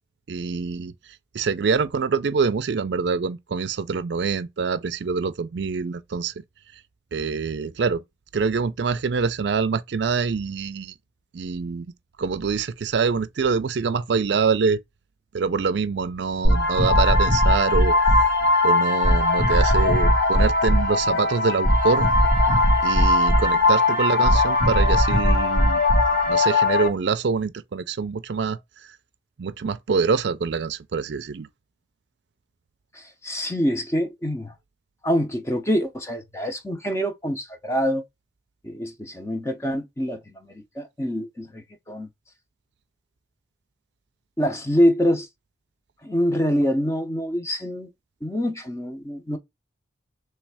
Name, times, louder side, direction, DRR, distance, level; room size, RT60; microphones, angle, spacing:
voice 1, 0.3-0.9 1.3-6.3 7.1-8.0 8.3-10.9 11.3-11.9 12.2-14.8 15.3-18.3 18.6-22.1 22.8-25.8 26.3-29.0 29.4-31.5, right 5 dB, 70° right, 0.4 m, -25 dB
sound 1, 16.4-26.9, left 1 dB, 75° left, 1.7 m, -19 dB
voice 2, 32.9-34.5 35.0-38.0 38.6-42.1 44.4-45.3 46.0-47.9 48.2-49.4, equal, 15° left, 0.7 m, -25 dB
3.3 x 3.2 x 4.7 m
head